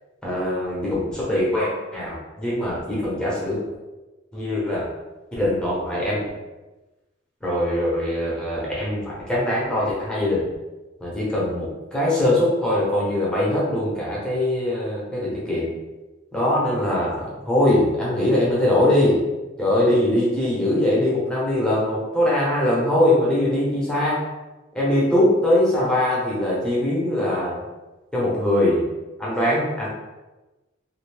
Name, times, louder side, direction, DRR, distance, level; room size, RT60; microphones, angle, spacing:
voice 1, 0.2-3.6 4.3-4.9 5.4-6.2 7.4-10.4 11.0-15.7 16.3-19.2 19.6-24.2 24.7-27.6 28.1-28.8 29.2-29.9, left 1 dB, 5° left, -7 dB, 0.8 m, -22 dB
2.6 x 2.5 x 3.3 m, 1.1 s
head